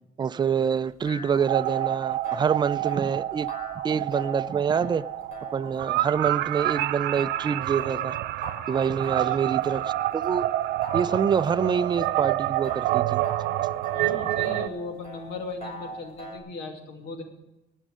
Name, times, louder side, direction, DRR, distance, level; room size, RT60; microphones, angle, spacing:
voice 1, 0.2-3.5 3.8-5.0 5.5-8.2 8.7-9.8 10.1-10.5 10.9-13.2, right 7 dB, 25° right, 0.4 m, -26 dB
sound 1, 0.7-16.4, left 1 dB, 40° left, 5.1 m, -43 dB
sound 2, 1.5-14.7, right 15 dB, 80° right, 0.5 m, -28 dB
voice 2, 9.2-9.6 13.5-13.6 13.9-17.2, left 3 dB, 80° left, 2.6 m, -38 dB
19.0 x 6.5 x 6.3 m
cardioid pair, 110°, 17 cm